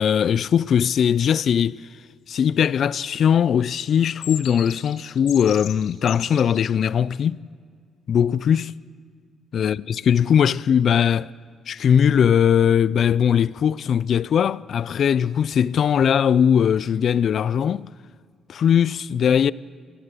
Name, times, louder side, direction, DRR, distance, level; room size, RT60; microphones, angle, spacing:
voice 1, 0.0-1.8 2.3-7.4 8.1-8.7 9.5-11.3 11.7-17.9 18.5-19.5, left 8 dB, 60° left, 0.4 m, -20 dB
sound 1, 3.8-6.6, left 10 dB, 90° left, 1.5 m, -37 dB
24.5 x 18.5 x 6.8 m
cardioid pair, 90°, 0 cm